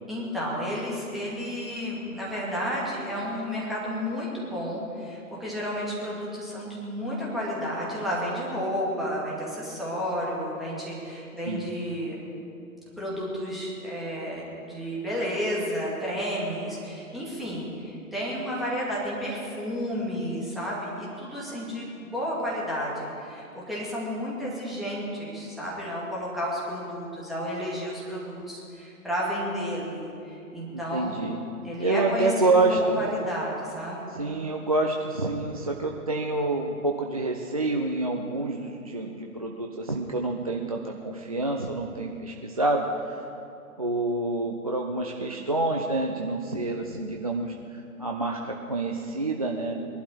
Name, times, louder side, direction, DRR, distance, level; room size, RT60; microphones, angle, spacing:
voice 1, 0.1-12.2 13.0-31.2 31.6-34.1, equal, ahead, -7 dB, 2.1 m, -32 dB
voice 2, 30.7-31.4 31.8-33.0 34.1-43.3 43.8-49.7, right 2 dB, 25° right, 1 dB, 0.5 m, -27 dB
21.0 x 11.5 x 4.8 m, 2.7 s
figure-of-eight pair, 130°, 45 cm